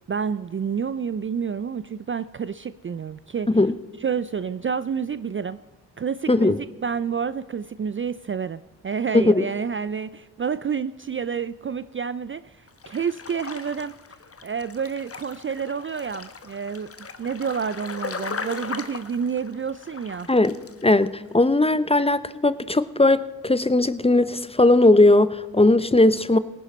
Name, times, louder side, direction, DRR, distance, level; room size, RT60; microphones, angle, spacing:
voice 1, 0.1-3.5 4.0-5.6 6.0-12.5 12.9-13.9 14.4-16.9 17.2-20.3, right 6 dB, 30° right, 15 dB, 0.4 m, -29 dB
voice 2, 9.1-9.4 20.3-20.5 20.8-26.4, left 2 dB, 15° left, 16 dB, 0.6 m, -18 dB
sound 1, 12.7-21.1 21.3-21.4, left 5 dB, 35° left, 1.1 m, -38 dB
18.0 x 10.0 x 4.3 m, 1.2 s
supercardioid pair, 45°, 41 cm